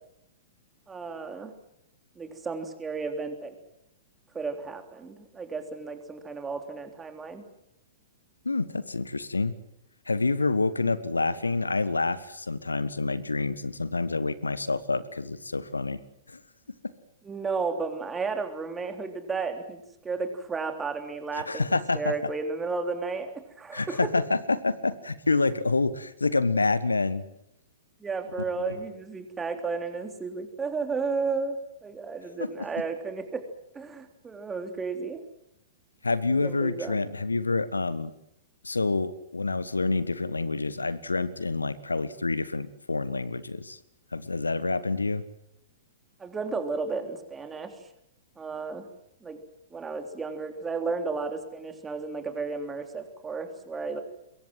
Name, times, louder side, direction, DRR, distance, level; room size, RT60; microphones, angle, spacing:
voice 1, 0.9-1.5 2.1-3.5 4.3-7.5 17.2-21.6 21.9-24.0 28.0-33.4 33.7-35.2 36.4-36.9 46.2-47.8 48.4-48.9 49.2-49.4 49.7-54.0, right 4 dB, 15° right, 6 dB, 3.4 m, -33 dB
voice 2, 8.4-9.5 10.1-16.0 16.3-16.4 21.3-22.1 23.7-27.2 28.7-28.8 32.4-32.5 36.0-38.1 38.6-43.8 44.1-45.2, left 3 dB, 75° left, 17 dB, 1.4 m, -27 dB
25.0 x 22.5 x 7.8 m, 0.80 s
figure-of-eight pair, 105°, 0 cm